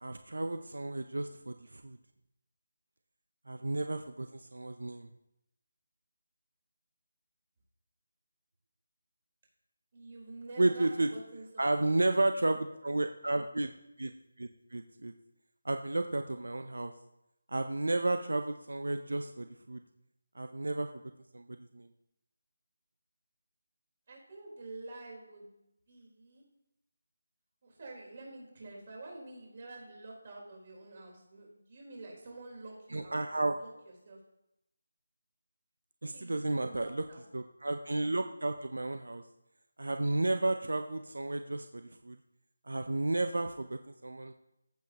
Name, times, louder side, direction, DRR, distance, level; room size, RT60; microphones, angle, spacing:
voice 1, 0.0-2.0 3.5-5.1 10.6-11.1 11.6-13.7 14.0-14.1 14.4-15.1 15.6-16.9 17.5-19.8 20.4-20.9 21.3-21.5 21.7-21.9 32.9-33.6 36.0-37.1 37.3-39.2 39.8-42.2 42.7-44.3, right 2 dB, 85° right, 8 dB, 0.6 m, -32 dB
voice 2, 9.9-12.2 24.1-26.4 27.6-34.2 36.1-37.2, right 2 dB, 40° right, -3 dB, 4.1 m, -48 dB
15.0 x 7.1 x 3.0 m, 0.85 s
figure-of-eight pair, 170°, 0 cm